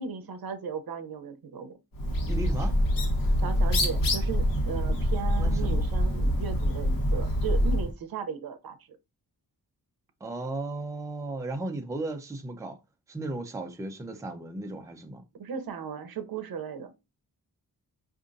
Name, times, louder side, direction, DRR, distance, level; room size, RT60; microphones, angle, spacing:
voice 1, 0.0-1.8 3.4-8.8 15.4-16.9, right 6 dB, 75° right, 0.7 m, -36 dB
Bird, 1.9-7.9, equal, 65° left, 1.1 m, -25 dB
voice 2, 2.3-2.8 5.4-5.9 10.2-12.8 13.1-15.2, right 2 dB, 10° right, 0.5 m, -35 dB
5.0 x 2.6 x 2.5 m
wide cardioid pair, 155°, 36 cm